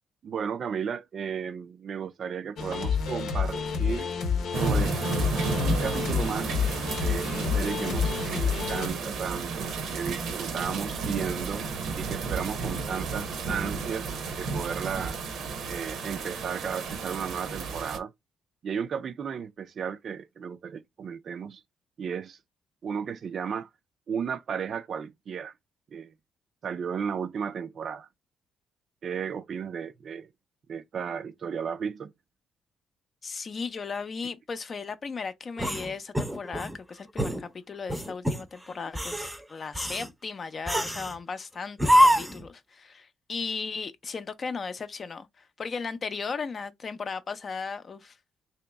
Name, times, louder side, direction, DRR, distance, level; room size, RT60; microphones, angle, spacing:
voice 1, 0.2-4.1 4.5-4.9 5.5-6.6 6.9-11.7 11.9-15.2 15.7-18.1 18.6-21.6 22.0-22.4 22.8-23.7 24.1-25.5 25.9-26.1 26.6-28.1 29.0-30.3 30.7-32.1, right 7 dB, 55° right, 0.4 m, -34 dB
sound 1, 2.6-8.9, left 6 dB, 80° left, 0.8 m, -29 dB
sound 2, 4.5-18.0, right 4 dB, 75° right, 0.7 m, -32 dB
voice 2, 33.2-48.2, left 5 dB, 40° left, 0.5 m, -36 dB
sound 3, 35.6-36.8 37.2-37.4 37.9-38.4 38.9-39.4 39.8-40.1 40.7-41.2 41.8-42.5, equal, 5° right, 0.6 m, -24 dB
3.0 x 2.8 x 3.3 m
cardioid pair, 90°, 0 cm